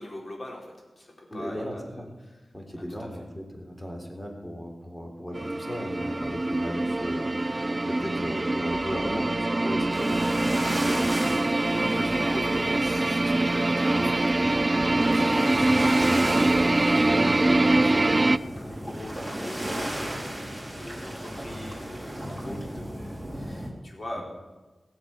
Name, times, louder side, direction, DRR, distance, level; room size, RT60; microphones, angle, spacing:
voice 1, 0.0-2.4 2.8-3.1 11.7-12.5 12.8-24.2, left 1 dB, 50° left, 0 dB, 4.0 m, -43 dB
voice 2, 1.3-2.1 2.5-11.1 11.8-12.7 22.4-22.6 24.2-24.3, equal, 20° left, 2 dB, 3.6 m, -36 dB
sound 1, 5.3-18.4, right 2 dB, 30° right, 0.4 m, -24 dB
sound 2, 9.9-23.7, right 1 dB, 5° right, 4.0 m, -35 dB
19.0 x 7.5 x 7.1 m, 1.2 s
wide cardioid pair, 65°, 0 cm